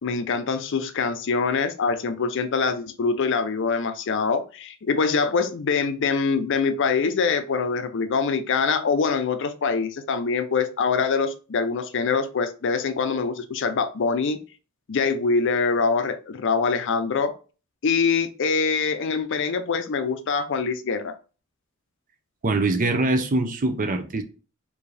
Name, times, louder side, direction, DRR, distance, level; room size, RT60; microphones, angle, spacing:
voice 1, 0.0-14.4 14.9-17.4 17.8-21.2, left 5 dB, 60° left, 0.5 m, -24 dB
voice 2, 22.4-24.2, right 2 dB, 40° right, 0.5 m, -23 dB
4.7 x 2.7 x 3.2 m
head